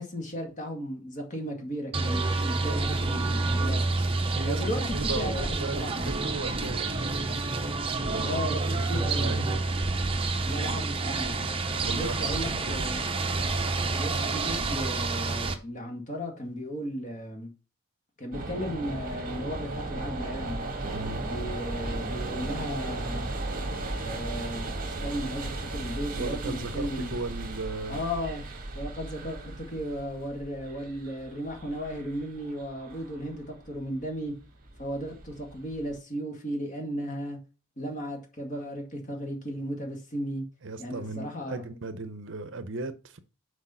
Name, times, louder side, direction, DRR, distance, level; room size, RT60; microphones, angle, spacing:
voice 1, 0.0-3.8 4.5-6.2 8.2-9.4 10.4-11.4 11.9-13.0 13.9-17.5 18.2-20.6 21.2-23.3 24.0-27.2 27.9-28.4 28.8-34.3 34.8-37.4 37.8-40.4 40.8-41.7, equal, 35° left, 1.9 m, -35 dB
sound 1, 1.9-15.6, right 3 dB, 25° right, 0.8 m, -28 dB
voice 2, 4.3-4.6 4.9-7.2 8.1-8.9 9.2-9.5 11.8-12.8 20.9-21.2 26.2-28.0 40.6-43.2, right 3 dB, 55° right, 0.7 m, -36 dB
sound 2, 18.3-35.9, right 2 dB, 40° right, 1.6 m, -36 dB
6.4 x 4.8 x 5.7 m
head